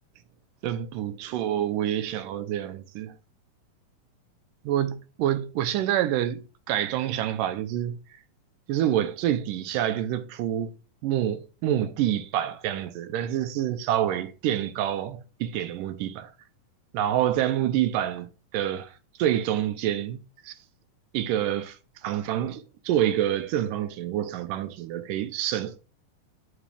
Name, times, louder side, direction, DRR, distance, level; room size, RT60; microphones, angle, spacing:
voice 1, 0.6-3.1 4.6-6.4 6.7-8.0 8.7-10.8 11.0-16.3 16.9-18.9 19.2-20.2 20.4-20.5 21.1-21.8 22.0-25.8, right 11 dB, 80° right, 2.2 m, -27 dB
7.5 x 5.6 x 3.3 m
omnidirectional pair, 3.9 m